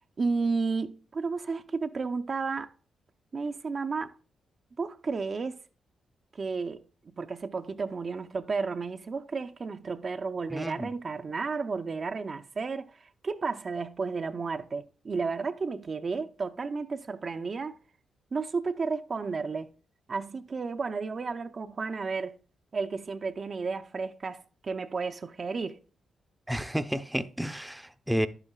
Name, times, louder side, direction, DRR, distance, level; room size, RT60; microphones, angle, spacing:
voice 1, 0.0-2.7 3.3-4.1 4.8-5.6 6.3-6.8 7.2-17.8 18.3-19.7 20.1-22.4 22.7-25.8, right 4 dB, 50° right, 0.6 m, -32 dB
voice 2, 10.5-10.9 26.5-28.3, equal, 5° right, 0.7 m, -31 dB
10.5 x 8.9 x 2.3 m
supercardioid pair, 45°, 0 cm